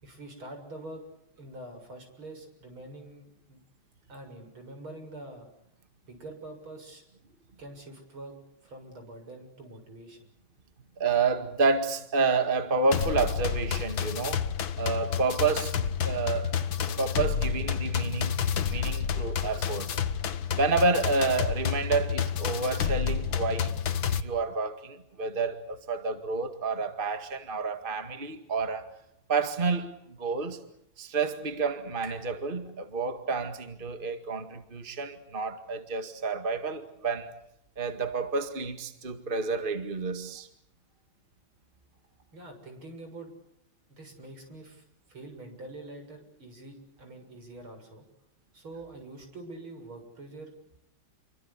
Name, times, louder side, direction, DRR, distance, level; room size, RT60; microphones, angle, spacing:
voice 1, 0.0-1.0 1.4-3.6 4.1-5.5 6.0-7.0 7.6-8.4 8.6-10.3 42.3-43.3 43.9-48.0 48.5-50.5, right 2 dB, 85° right, 7.8 m, -45 dB
voice 2, 11.0-14.4 14.8-16.5 17.0-18.4 18.6-19.9 20.5-23.7 24.1-28.9 29.3-30.6 31.0-37.3 37.8-40.5, right 4 dB, 25° right, 2.1 m, -29 dB
sound 1, 12.9-24.2, left 7 dB, 75° left, 2.1 m, -29 dB
sound 2, 29.6-33.4, right 3 dB, 55° right, 5.3 m, -56 dB
29.0 x 24.5 x 8.3 m
omnidirectional pair, 2.2 m